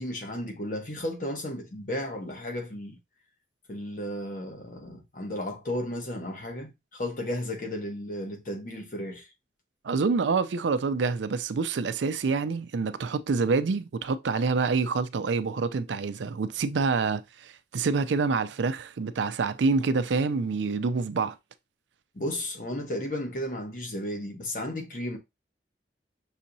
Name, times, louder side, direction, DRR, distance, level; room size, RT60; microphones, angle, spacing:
voice 1, 0.0-3.0 3.7-9.3 22.1-25.2, left 1 dB, 45° left, 1.1 m, -34 dB
voice 2, 9.8-21.4, right 4 dB, 85° right, 0.4 m, -27 dB
6.3 x 2.9 x 2.6 m
head